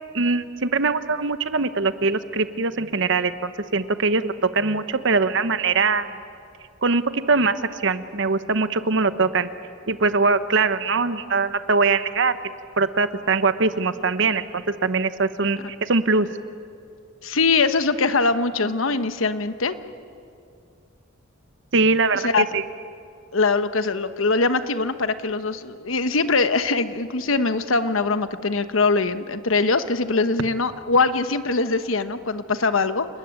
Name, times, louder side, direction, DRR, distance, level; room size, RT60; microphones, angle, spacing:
voice 1, 0.1-6.1 6.8-9.5 9.9-16.3 21.7-22.6, right 4 dB, 65° right, 12 dB, 1.0 m, -22 dB
voice 2, 17.2-19.8 22.1-22.4 23.3-33.1, left 3 dB, 75° left, 11 dB, 1.1 m, -22 dB
29.0 x 20.0 x 8.9 m, 2.4 s
head